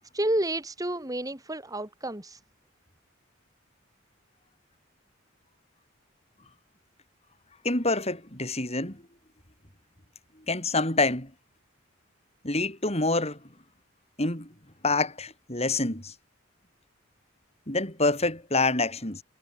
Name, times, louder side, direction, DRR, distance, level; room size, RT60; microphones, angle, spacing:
voice 1, 0.1-2.4, right 1 dB, 15° right, 2.6 m, -30 dB
voice 2, 7.6-9.0 10.5-11.3 12.4-13.4 14.2-14.5 14.8-16.1 17.7-19.2, left 2 dB, 30° left, 7.2 m, -26 dB
head